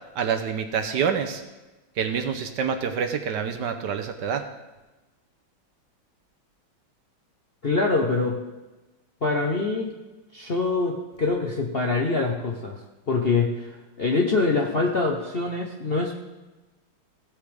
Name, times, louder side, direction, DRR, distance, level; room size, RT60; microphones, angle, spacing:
voice 1, 0.2-1.4 2.0-4.4, right 7 dB, 65° right, 7 dB, 1.2 m, -27 dB
voice 2, 7.6-8.4 9.2-9.9 10.3-12.8 13.1-16.1, left 3 dB, 45° left, 0 dB, 0.7 m, -24 dB
16.5 x 8.2 x 3.4 m, 1.1 s
omnidirectional pair, 2.2 m